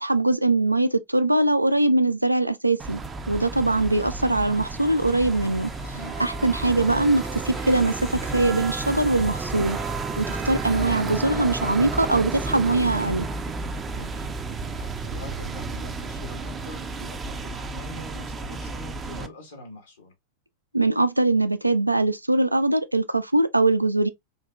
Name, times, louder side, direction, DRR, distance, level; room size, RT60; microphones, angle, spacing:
voice 1, 0.0-3.0 3.3-5.7 6.2-9.8 10.2-13.3 20.7-24.1, right 2 dB, 85° right, 0.3 m, -22 dB
sound 1, 2.8-19.3, right 3 dB, 20° right, 0.4 m, -32 dB
sound 2, 3.5-13.3, left 6 dB, 25° left, 0.6 m, -48 dB
voice 2, 5.9-6.2 13.9-14.4 14.7-20.1, left 2 dB, 70° left, 1.2 m, -44 dB
3.7 x 2.8 x 2.2 m
figure-of-eight pair, 90°, 0 cm